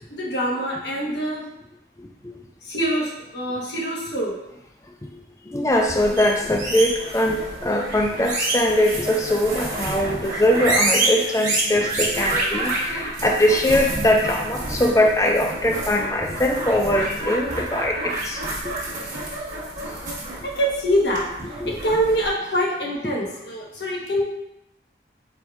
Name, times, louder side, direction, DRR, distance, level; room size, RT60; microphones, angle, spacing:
voice 1, 0.0-1.4 2.6-4.4 20.4-24.2, equal, 80° left, -3 dB, 1.1 m, -25 dB
voice 2, 5.1-18.7 20.4-20.5 21.6-21.7 23.0-23.1, left 1 dB, 20° left, 2 dB, 0.4 m, -22 dB
sound 1, 5.8-22.3, right 2 dB, 45° right, 1.3 m, -28 dB
4.5 x 4.4 x 2.4 m, 0.86 s
head